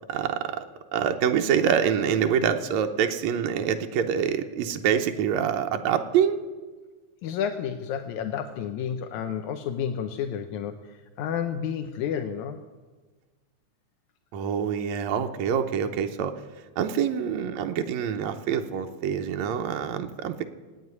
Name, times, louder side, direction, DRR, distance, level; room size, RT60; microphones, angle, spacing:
voice 1, 0.1-0.7 0.9-6.4 14.3-16.3 16.8-20.4, right 8 dB, 75° right, 5 dB, 2.1 m, -26 dB
voice 2, 7.2-12.6, left 8 dB, 80° left, 7 dB, 2.1 m, -31 dB
16.0 x 9.1 x 9.5 m, 1.3 s
omnidirectional pair, 3.4 m